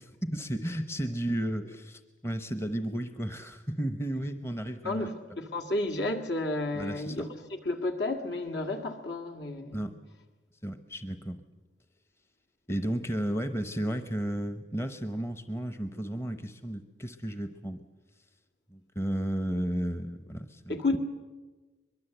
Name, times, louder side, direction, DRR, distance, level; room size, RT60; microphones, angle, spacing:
voice 1, 0.0-5.1 6.7-7.3 9.7-9.9 10.6-11.4 12.7-17.8 18.7-21.0, right 1 dB, 15° left, 0.8 m, -33 dB
voice 2, 4.8-9.9 20.7-21.0, left 2 dB, 70° left, 2.2 m, -32 dB
23.0 x 22.0 x 7.9 m
head